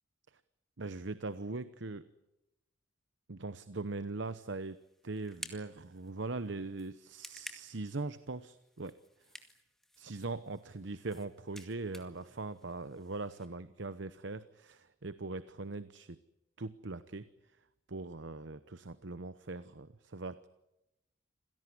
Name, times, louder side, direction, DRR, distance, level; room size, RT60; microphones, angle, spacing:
voice 1, 0.8-2.1 3.3-8.9 10.0-16.2 16.6-17.3 17.9-20.5, right 3 dB, 65° right, 13 dB, 0.9 m, -41 dB
sound 1, 4.2-13.4, left 1 dB, ahead, 2.1 m, -54 dB
27.5 x 17.0 x 10.0 m, 0.93 s
head